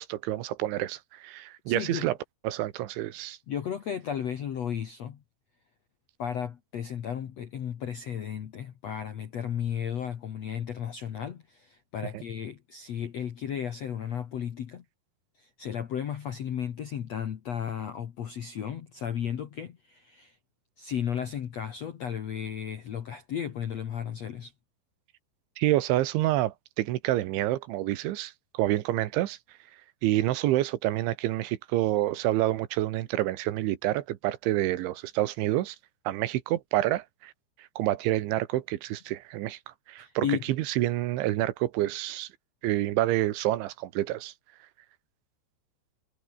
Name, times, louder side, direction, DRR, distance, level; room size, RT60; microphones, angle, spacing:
voice 1, 0.0-2.2 2.5-3.4 25.6-29.4 30.0-35.8 36.1-37.3 37.6-40.3 40.6-42.3 42.6-44.3, right 15 dB, 85° right, 3.7 m, -28 dB
voice 2, 1.7-2.1 3.5-5.2 6.2-14.8 15.4-20.4 20.8-24.5 40.0-40.4, left 8 dB, 65° left, 1.7 m, -34 dB
omnidirectional pair, 5.3 m